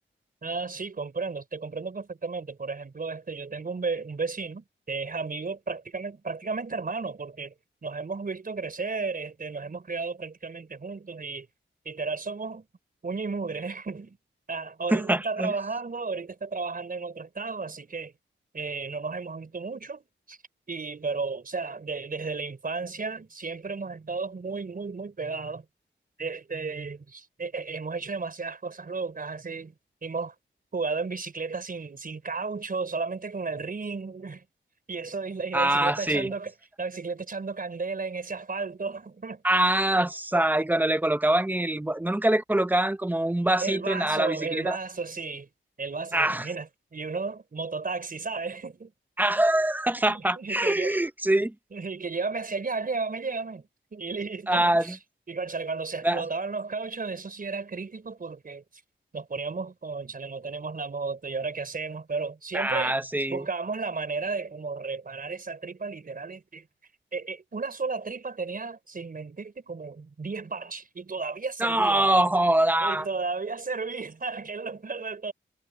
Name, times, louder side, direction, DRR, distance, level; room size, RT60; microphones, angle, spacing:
voice 1, 0.4-7.5 7.8-11.5 11.8-12.7 13.0-14.2 14.5-18.1 18.5-20.0 20.3-20.4 20.7-25.6 26.2-29.7 30.0-30.3 30.7-34.4 34.9-36.5 36.8-39.4 43.6-45.5 45.8-48.9 50.1-51.0 51.7-53.6 53.9-55.0 55.3-58.6 59.1-62.9 63.3-66.7 67.1-72.2 72.8-75.3, right 4 dB, 45° right, 4.9 m, -33 dB
voice 2, 14.9-15.5 35.5-36.3 39.4-44.8 46.1-46.5 49.2-51.5 54.5-55.0 56.0-56.2 62.5-63.5 71.6-73.1, right 1 dB, 10° right, 0.7 m, -24 dB
wide cardioid pair, 120°, 21 cm